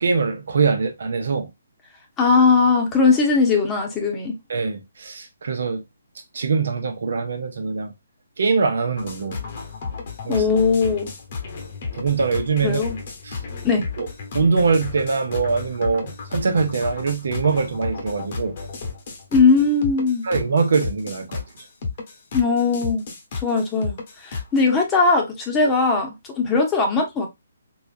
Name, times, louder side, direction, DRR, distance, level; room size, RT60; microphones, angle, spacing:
voice 1, 0.0-1.5 4.5-5.8 6.3-7.9 8.4-9.4 10.3-10.4 12.0-12.8 13.3-13.4 14.0-14.1 14.3-18.5 20.2-21.4, right 4 dB, 65° right, 0.8 m, -22 dB
voice 2, 2.2-4.3 10.3-11.1 12.6-13.0 13.6-13.8 19.3-20.2 22.3-23.0 23.4-24.0 24.2-27.3, left 4 dB, 15° left, 0.9 m, -19 dB
sound 1, 9.0-24.6, left 4 dB, 45° left, 1.0 m, -33 dB
3.9 x 2.4 x 2.5 m
figure-of-eight pair, 145°, 0 cm